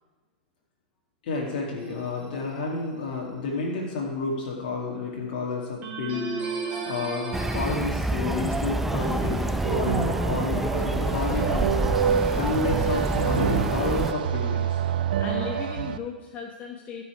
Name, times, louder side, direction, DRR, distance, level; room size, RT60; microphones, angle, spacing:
voice 1, 1.2-14.8, left 3 dB, 65° left, -3 dB, 2.0 m, -31 dB
sound 1, 1.8-2.4 5.8-7.8, right 4 dB, 30° right, 2.6 m, -34 dB
sound 2, 7.3-14.1, right 1 dB, 5° right, 0.5 m, -27 dB
sound 3, 9.0-16.0, right 8 dB, 70° right, 0.6 m, -27 dB
voice 2, 15.0-17.0, left 5 dB, 30° left, 1 dB, 1.0 m, -36 dB
13.5 x 5.7 x 4.7 m, 1.3 s
hypercardioid pair, 115°, 5 cm